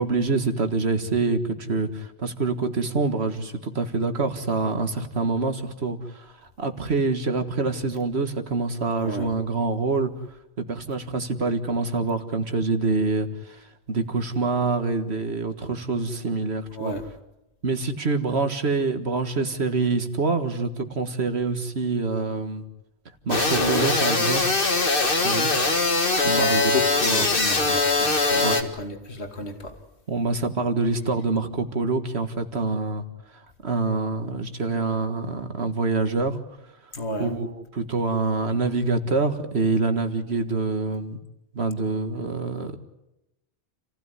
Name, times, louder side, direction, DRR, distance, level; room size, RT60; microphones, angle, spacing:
voice 1, 0.0-16.9 17.6-22.6 23.2-24.6 24.9-25.5 26.4-26.7 27.0-27.3 28.4-28.6 30.1-36.9 37.2-41.2 41.5-42.8, right 3 dB, 70° right, 7 dB, 2.0 m, -26 dB
sound 1, 23.3-28.6, left 3 dB, 50° left, 2.1 m, -22 dB
voice 2, 26.2-29.8 36.9-37.3, left 2 dB, 70° left, 5 dB, 2.8 m, -31 dB
29.0 x 16.0 x 9.8 m, 0.91 s
omnidirectional pair, 1.1 m